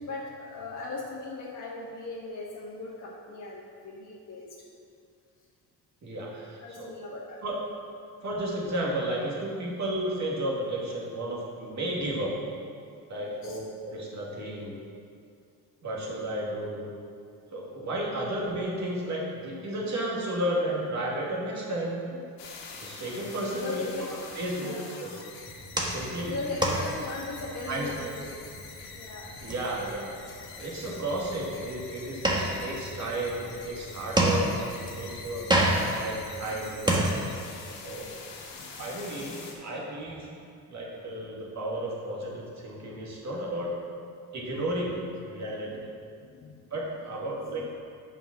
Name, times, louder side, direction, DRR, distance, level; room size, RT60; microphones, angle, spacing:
voice 1, 0.0-4.5 6.6-7.4 13.2-13.6 22.1-22.7 23.5-24.1 24.6-24.9 26.3-28.4 28.9-29.3 38.5-38.8 45.4-45.6 46.2-46.7 47.4-47.7, left 3 dB, 50° left, -6 dB, 1.4 m, -38 dB
voice 2, 6.0-6.9 7.4-7.6 8.2-12.3 13.1-14.8 15.8-16.9 17.5-22.0 22.8-25.1 25.8-26.3 27.7-27.9 29.4-30.2 30.6-35.5 36.0-37.0 37.8-38.2 38.7-40.4 40.7-43.7 44.3-45.0 45.3-45.7 46.7-47.6, right 1 dB, 45° right, -4 dB, 2.2 m, -33 dB
sound 1, 22.4-39.5, left 4 dB, 90° left, 1.4 m, -45 dB
sound 2, 25.5-37.6, right 1 dB, 10° right, 1.4 m, -30 dB
7.1 x 5.7 x 5.9 m, 2.4 s
cardioid pair, 85°, 38 cm